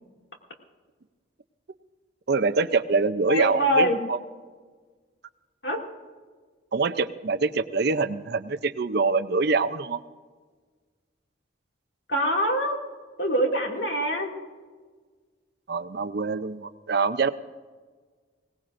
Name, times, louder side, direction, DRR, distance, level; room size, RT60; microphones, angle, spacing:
voice 1, 2.3-4.2 6.7-10.0 15.7-17.3, right 4 dB, 55° right, 12 dB, 0.6 m, -25 dB
voice 2, 3.3-4.0 5.6-5.8 12.1-12.8 13.2-14.3, equal, 60° left, 1 dB, 2.4 m, -24 dB
22.0 x 18.0 x 2.6 m, 1.5 s
head